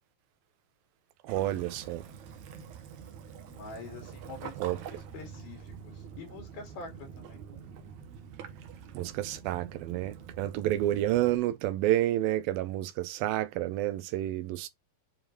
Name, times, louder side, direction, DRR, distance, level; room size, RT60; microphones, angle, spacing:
voice 1, 1.2-2.0 4.6-4.8 8.9-14.7, right 14 dB, 80° right, 2.4 m, -29 dB
Waves surf / Splash splatter / Trickle dribble, 1.3-11.4, right 7 dB, 65° right, 2.2 m, -46 dB
voice 2, 3.5-7.4, left 4 dB, 90° left, 4.7 m, -46 dB
8.5 x 4.8 x 3.3 m
omnidirectional pair, 4.2 m